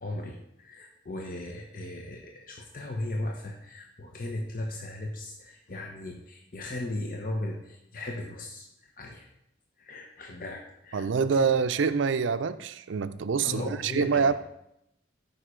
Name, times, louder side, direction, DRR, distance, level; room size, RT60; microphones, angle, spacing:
voice 1, 0.0-8.7 9.0-9.3 9.8-11.5 13.4-14.3, left 1 dB, 45° left, 0.9 m, -37 dB
voice 2, 10.9-14.3, right 5 dB, 80° right, 0.5 m, -26 dB
13.0 x 5.5 x 5.0 m
head